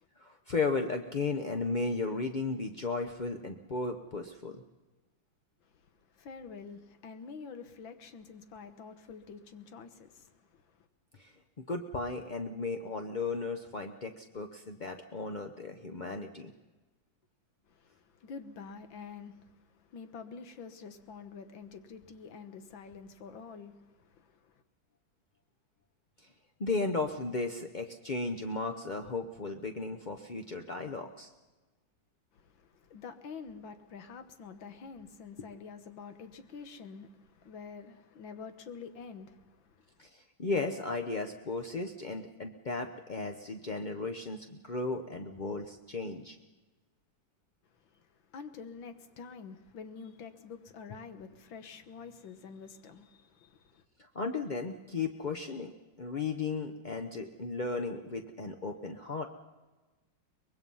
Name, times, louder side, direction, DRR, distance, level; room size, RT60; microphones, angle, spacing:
voice 1, 0.2-4.6 11.2-16.5 26.2-26.3 26.6-31.3 40.0-46.4 54.0-59.3, left 3 dB, 45° left, 0.6 m, -35 dB
voice 2, 5.6-10.9 17.7-24.6 32.3-40.1 47.7-53.8, left 5 dB, 75° left, 2.0 m, -48 dB
24.0 x 21.0 x 5.6 m
omnidirectional pair, 2.1 m